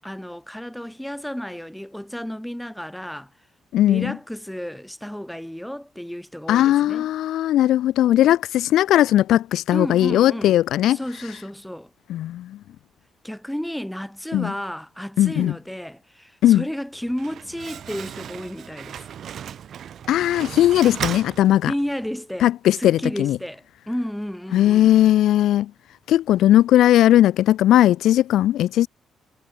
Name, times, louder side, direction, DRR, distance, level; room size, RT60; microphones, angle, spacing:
voice 1, 0.0-3.3 3.9-7.1 9.7-10.6 10.9-11.9 13.2-19.1 21.7-22.5 22.8-25.0, equal, 5° left, 1.4 m, -32 dB
voice 2, 3.7-4.2 6.5-11.0 12.1-12.6 14.3-14.5 15.2-15.5 16.4-16.6 20.1-21.7 22.4-23.4 24.5-25.7 26.1-28.9, left 13 dB, 80° left, 0.4 m, -18 dB
Slam, 16.9-22.1, right 9 dB, 60° right, 1.1 m, -35 dB
cardioid pair, 90°, 0 cm